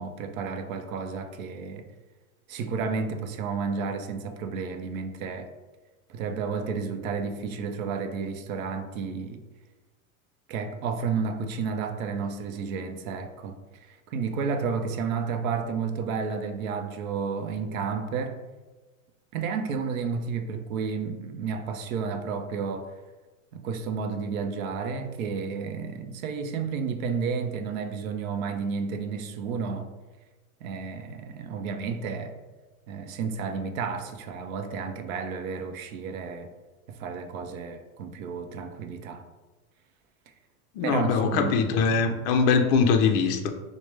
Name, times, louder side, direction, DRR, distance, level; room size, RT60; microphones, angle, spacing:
voice 1, 0.0-1.8 2.5-5.5 6.1-9.4 10.5-18.4 19.3-22.9 23.5-29.9 30.6-32.4 32.9-36.5 36.9-39.2 40.8-41.6, right 5 dB, 75° right, 0.6 m, -31 dB
voice 2, 40.8-43.5, left 5 dB, 45° left, 0.4 m, -22 dB
4.7 x 2.1 x 3.1 m
supercardioid pair, 150°, 41 cm